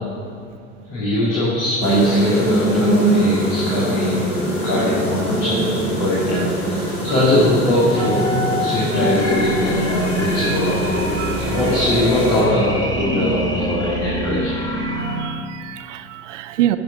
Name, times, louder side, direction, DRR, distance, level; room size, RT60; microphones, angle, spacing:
voice 1, 0.9-4.4 4.6-8.3 8.6-11.1 11.4-14.5, left 1 dB, 70° left, -7 dB, 2.5 m, -21 dB
sound 1, 1.8-12.4, right 2 dB, 90° left, 2.0 m, -22 dB
sound 2, 8.0-15.2, equal, 10° left, 1.9 m, -25 dB
voice 2, 14.8-16.8, right 13 dB, 75° right, 12 dB, 0.6 m, -26 dB
10.5 x 6.3 x 6.0 m, 2.3 s
hypercardioid pair, 65°, 37 cm